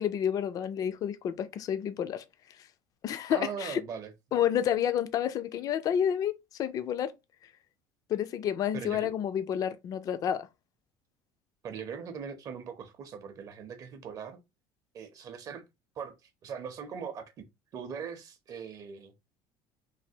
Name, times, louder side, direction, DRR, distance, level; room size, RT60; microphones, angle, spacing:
voice 1, 0.0-2.2 3.0-3.8 4.3-7.1 8.1-10.5, left 9 dB, 40° left, 0.4 m, -30 dB
voice 2, 3.3-4.1 8.7-9.1 11.6-14.4 14.9-15.6 16.0-17.5 17.7-19.1, right 7 dB, 40° right, 0.6 m, -40 dB
3.3 x 2.6 x 2.7 m
cardioid pair, 145°, 10 cm